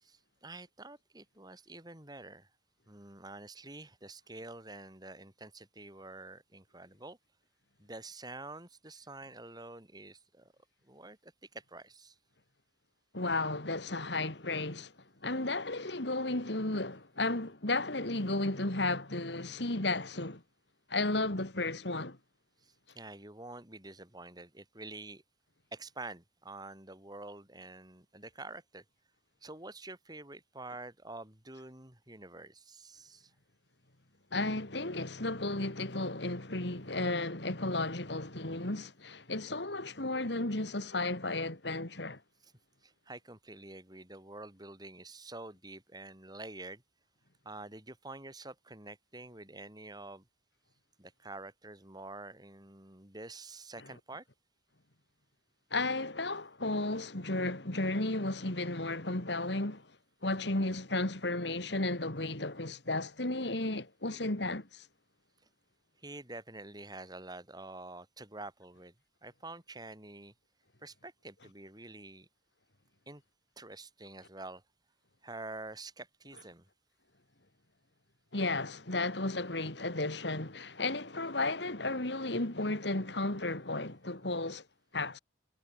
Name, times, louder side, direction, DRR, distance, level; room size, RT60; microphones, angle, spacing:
voice 1, 0.0-2.5 2.9-7.2 7.8-10.5 10.8-12.2 22.6-25.2 25.7-28.8 29.4-33.3 42.4-42.5 42.8-46.8 47.4-50.3 51.0-54.2 66.0-68.9 69.2-70.3 70.8-72.3 73.1-73.2 73.6-74.6 75.2-76.7, right 2 dB, 20° right, 6.7 m, -47 dB
voice 2, 13.1-14.9 15.2-20.4 20.9-22.2 34.3-42.2 55.7-59.9 60.2-64.9 78.3-84.6 84.9-85.2, left 2 dB, 65° left, 2.8 m, -33 dB
head